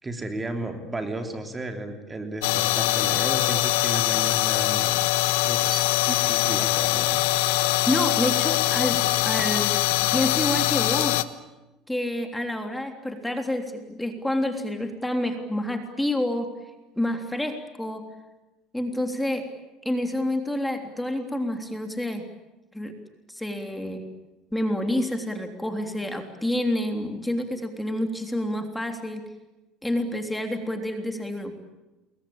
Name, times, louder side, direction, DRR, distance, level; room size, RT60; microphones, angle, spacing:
voice 1, 0.0-5.0 5.4-7.2, right 2 dB, 15° right, 5 dB, 3.3 m, -34 dB
sound 1, 2.4-11.2, left 16 dB, 90° left, 1.2 m, -23 dB
voice 2, 7.9-9.8 10.1-11.2 11.9-16.5 16.9-18.0 18.7-19.4 19.8-22.2 22.7-22.9 23.3-24.0 24.5-29.2 29.8-31.5, left 1 dB, 5° left, 5 dB, 3.3 m, -28 dB
28.5 x 22.5 x 8.9 m, 1.0 s
supercardioid pair, 110°, 0 cm